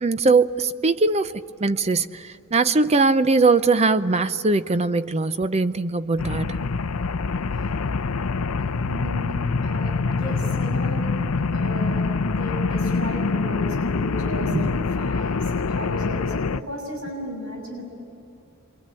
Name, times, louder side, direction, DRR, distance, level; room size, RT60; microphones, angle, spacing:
voice 1, 0.0-6.6 14.5-14.7, right 3 dB, 30° right, 13 dB, 0.6 m, -21 dB
sound 1, 6.2-16.6, left 4 dB, 90° left, 0.6 m, -25 dB
voice 2, 8.8-9.4 9.6-11.1 11.5-14.5 14.9-17.8, equal, 65° right, 1 dB, 6.3 m, -35 dB
27.5 x 23.0 x 9.0 m, 2.6 s
head